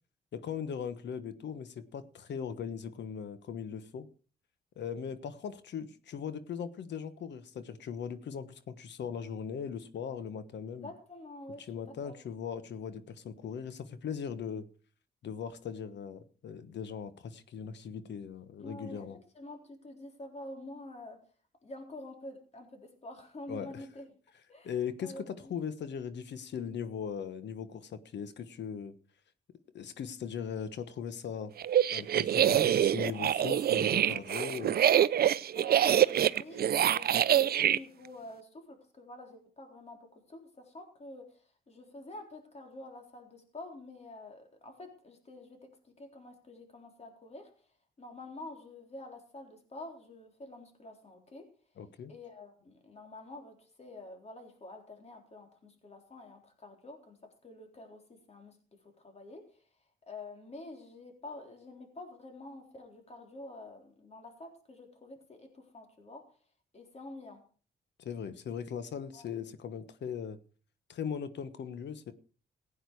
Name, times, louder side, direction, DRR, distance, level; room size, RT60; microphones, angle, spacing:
voice 1, 0.3-4.1 4.8-10.9 11.7-14.7 15.2-19.2 23.5-23.8 24.6-28.9 29.7-31.5 31.9-34.8 51.8-52.1 68.0-70.4 70.9-72.1, left 7 dB, 70° left, 1.2 m, -39 dB
voice 2, 10.8-12.2 18.6-19.1 19.3-21.2 21.6-24.1 24.5-24.7 25.0-25.5 35.5-47.7 48.0-51.5 52.1-59.6 60.1-66.3 66.7-67.4 69.1-69.3, left 2 dB, 35° left, 3.8 m, -48 dB
sound 1, 31.6-37.8, right 10 dB, 55° right, 0.5 m, -25 dB
16.0 x 9.1 x 4.7 m
cardioid pair, 90°, 19 cm